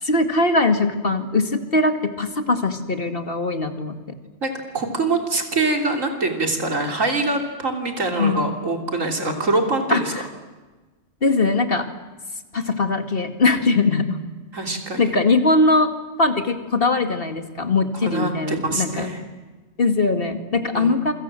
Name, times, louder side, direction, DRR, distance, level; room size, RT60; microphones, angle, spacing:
voice 1, 0.0-4.2 8.2-8.5 9.9-10.2 11.2-11.9 12.5-14.2 15.0-15.9 16.2-19.1 19.8-21.1, left 3 dB, 45° left, 7 dB, 2.3 m, -21 dB
voice 2, 4.4-10.1 14.5-15.1 18.0-19.2 20.7-21.0, right 2 dB, 80° right, 3 dB, 3.7 m, -24 dB
28.0 x 25.0 x 7.6 m, 1.2 s
omnidirectional pair, 1.3 m